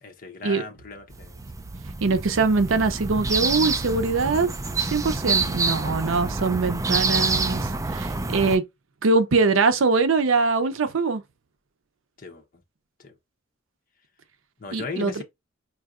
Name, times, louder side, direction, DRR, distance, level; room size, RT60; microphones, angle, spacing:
voice 1, 0.0-1.4 12.2-12.4 13.0-13.1 14.6-15.2, left 4 dB, 45° left, 0.8 m, -37 dB
sound 1, 1.1-8.6, right 3 dB, 15° right, 0.4 m, -27 dB
voice 2, 2.0-4.5 4.8-8.6 9.0-11.2 14.7-15.2, right 4 dB, 80° right, 0.6 m, -22 dB
4.6 x 2.7 x 2.4 m
head